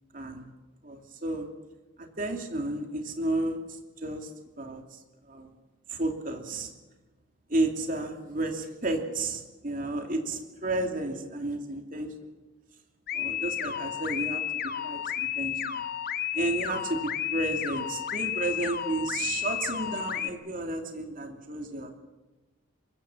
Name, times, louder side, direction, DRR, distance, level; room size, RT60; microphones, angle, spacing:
voice 1, 0.1-0.5 0.8-1.5 2.0-5.5 5.9-6.7 7.5-12.1 13.1-15.8 16.3-22.0, right 2 dB, 45° right, 4 dB, 2.8 m, -32 dB
sound 1, 13.1-20.3, left 10 dB, 50° left, 1.1 m, -32 dB
23.5 x 22.0 x 7.4 m, 1.2 s
head